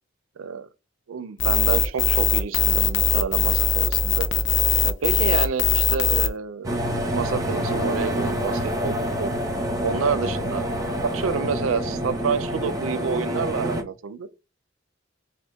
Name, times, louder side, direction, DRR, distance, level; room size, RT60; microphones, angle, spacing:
voice 1, 1.1-4.3 4.8-6.7 7.1-9.3 9.8-10.7 11.0-14.3, right 6 dB, 90° right, 0.5 m, -28 dB
sound 1, 1.4-6.3, left 7 dB, 65° left, 0.6 m, -20 dB
sound 2, 6.6-13.8, equal, 20° right, 0.8 m, -27 dB
4.4 x 2.4 x 3.5 m
head